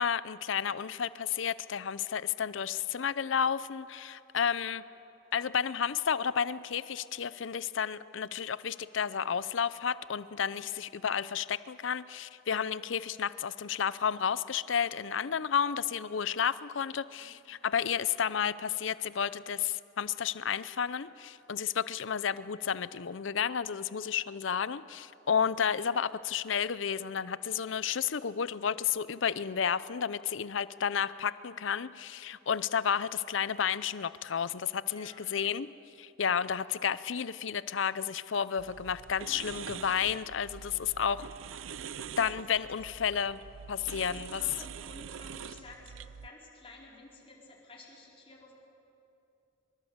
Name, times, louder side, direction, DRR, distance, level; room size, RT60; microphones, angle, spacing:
voice 1, 0.0-4.9 5.3-35.7 36.0-41.3 42.2-43.4 43.7-44.4, left 7 dB, 70° left, 16 dB, 0.6 m, -31 dB
voice 2, 34.9-35.2 40.5-41.3 41.7-42.8 43.8-48.5, left 3 dB, 30° left, -3 dB, 4.6 m, -54 dB
sound 1, 38.6-46.3, right 7 dB, 85° right, 0.6 m, -45 dB
23.0 x 22.5 x 8.0 m, 2.8 s
head